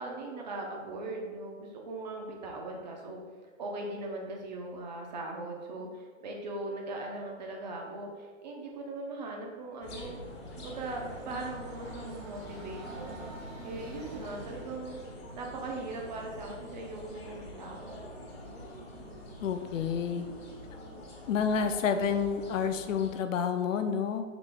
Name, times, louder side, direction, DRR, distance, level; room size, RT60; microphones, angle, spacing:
voice 1, 0.0-3.2 3.6-10.2 10.6-13.1 13.6-15.0 15.3-18.1, right 2 dB, 35° right, 0 dB, 0.6 m, -39 dB
sound 1, 9.8-23.2, left 1 dB, 50° left, 1.5 m, -46 dB
Train, 10.1-14.8, right 1 dB, 85° right, 1.4 m, -48 dB
voice 2, 19.4-20.3 21.3-24.2, left 6 dB, 70° left, 8 dB, 0.5 m, -29 dB
4.9 x 3.9 x 2.2 m, 1.5 s
hypercardioid pair, 160°, 40 cm